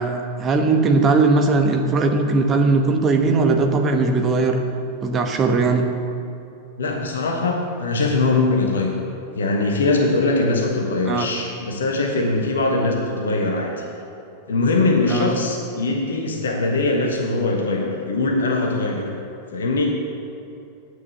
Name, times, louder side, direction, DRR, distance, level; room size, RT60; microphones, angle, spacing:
voice 1, 0.0-4.6 5.0-5.9 11.1-11.3 15.1-15.4, right 3 dB, 25° right, 4 dB, 1.2 m, -19 dB
voice 2, 6.8-9.0 9.4-13.8 14.5-19.1 19.5-19.9, left 2 dB, 65° left, 0 dB, 1.3 m, -21 dB
9.2 x 6.4 x 8.0 m, 2.8 s
figure-of-eight pair, 90°, 0 cm